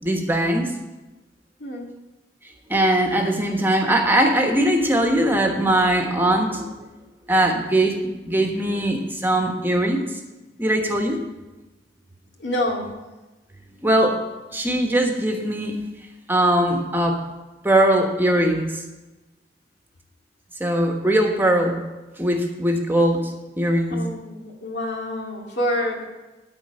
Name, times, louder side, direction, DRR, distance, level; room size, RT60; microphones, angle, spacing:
voice 1, 0.0-0.7 2.7-6.7 7.3-10.0 10.6-11.2 13.8-14.2 14.5-15.7 16.3-17.2 17.6-18.8 20.6-21.8 22.2-24.0, right 1 dB, 10° right, 2 dB, 1.2 m, -20 dB
voice 2, 1.6-1.9 12.4-13.0 23.9-26.0, left 1 dB, 70° left, 0 dB, 2.1 m, -27 dB
13.5 x 4.6 x 8.7 m, 1.1 s
head